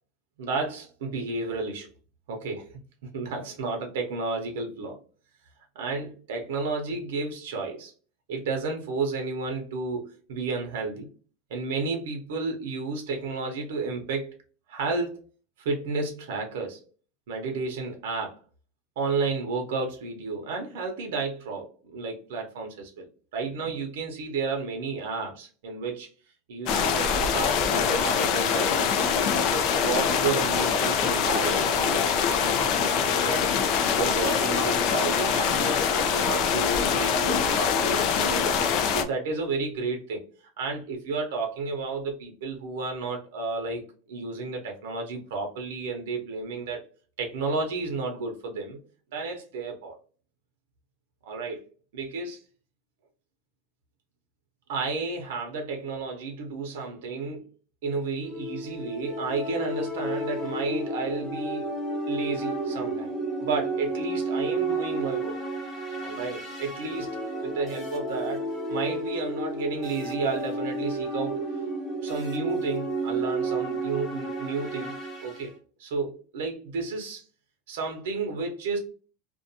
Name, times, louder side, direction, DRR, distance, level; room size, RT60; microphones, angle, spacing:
voice 1, 0.4-1.9 2.3-5.0 5.7-7.9 8.3-11.1 11.5-14.4 14.7-15.2 15.6-16.8 17.3-18.4 19.0-26.1 26.5-33.4 33.9-38.5 38.9-40.2 40.6-46.8 47.2-48.8 49.1-50.0 51.2-51.6 51.9-52.4 54.7-57.5 57.8-61.7 62.1-63.1 63.4-65.4 66.0-71.6 72.0-75.0 75.2-75.5 75.8-77.2 77.7-78.8, right 3 dB, 85° right, 0.8 m, -32 dB
sound 1, 26.7-39.0, left 6 dB, 45° left, 0.4 m, -24 dB
sound 2, 58.2-75.5, right 2 dB, 5° left, 0.9 m, -32 dB
2.6 x 2.2 x 2.6 m
supercardioid pair, 170°, 0 cm